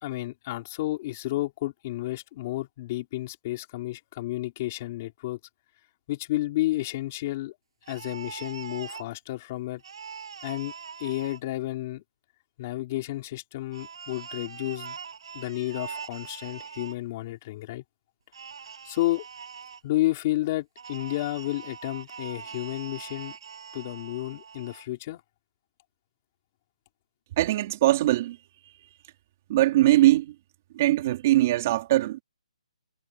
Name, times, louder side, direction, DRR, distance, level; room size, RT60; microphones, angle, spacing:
voice 1, 0.0-5.4 6.1-7.5 7.9-9.8 10.4-10.7 11.0-12.0 12.6-15.0 15.3-17.8 18.8-19.2 19.8-23.4 23.7-25.2, left 16 dB, 20° left, 4.3 m, -31 dB
sound 1, 7.8-9.1 9.8-11.4 13.7-16.9 18.3-19.8 20.8-24.9, right 6 dB, 45° right, 7.8 m, -42 dB
voice 2, 27.4-28.4 29.5-30.3 30.7-32.2, right 15 dB, 20° right, 3.6 m, -21 dB
hypercardioid pair, 180°, 4 cm